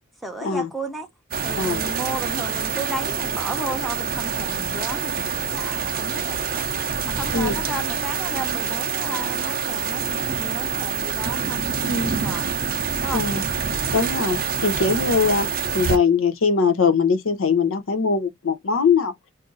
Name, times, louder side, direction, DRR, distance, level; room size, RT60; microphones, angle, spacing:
voice 1, 0.2-1.1 1.4-6.6 7.1-11.7 12.2-12.5 13.0-13.2, right 1 dB, ahead, 0.7 m, -33 dB
sound 1, 1.3-16.0, right 6 dB, 45° right, 0.6 m, -26 dB
voice 2, 11.8-12.2 13.1-13.4 13.9-15.5 15.7-19.1, left 5 dB, 75° left, 0.6 m, -21 dB
2.6 x 2.5 x 3.8 m
head